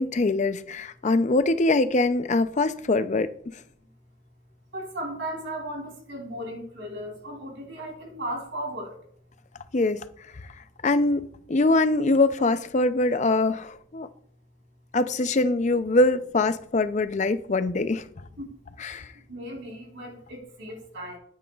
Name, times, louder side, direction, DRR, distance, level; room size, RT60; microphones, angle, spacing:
voice 1, 0.0-3.3 9.7-10.0 10.8-14.1 14.9-18.1 18.8-19.1, left 2 dB, 35° left, 0.5 m, -23 dB
voice 2, 4.7-8.9 18.4-18.5 19.3-21.2, right 1 dB, 60° right, 3.2 m, -36 dB
12.5 x 9.3 x 2.4 m
head